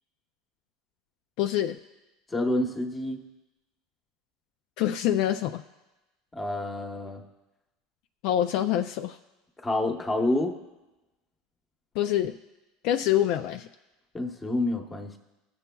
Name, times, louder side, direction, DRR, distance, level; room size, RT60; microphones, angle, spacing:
voice 1, 1.4-1.8 4.8-5.6 8.2-9.2 12.0-12.4 12.8-13.7, left 11 dB, 60° left, 7 dB, 0.4 m, -25 dB
voice 2, 2.3-3.2 6.3-7.2 9.6-10.5 14.1-15.2, left 1 dB, 15° left, 3 dB, 1.0 m, -28 dB
20.0 x 6.9 x 2.3 m, 1.0 s
supercardioid pair, 135°, 0 cm